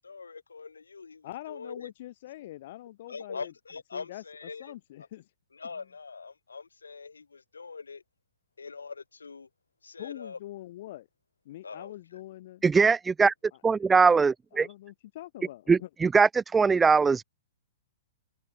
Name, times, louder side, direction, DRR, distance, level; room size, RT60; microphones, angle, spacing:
voice 1, 0.0-1.9 3.1-4.7 5.5-8.0 8.6-9.5 9.8-10.4 11.6-11.9, left 4 dB, 90° left, 6.7 m, -42 dB
voice 2, 1.2-3.5 3.9-5.3 10.0-11.1 11.5-12.6 14.0-14.1 14.5-15.9, left 15 dB, 55° left, 5.7 m, -44 dB
voice 3, 12.6-13.3 13.6-14.7 15.7-17.2, right 5 dB, 10° right, 0.8 m, -21 dB
hypercardioid pair, 120°, 0 cm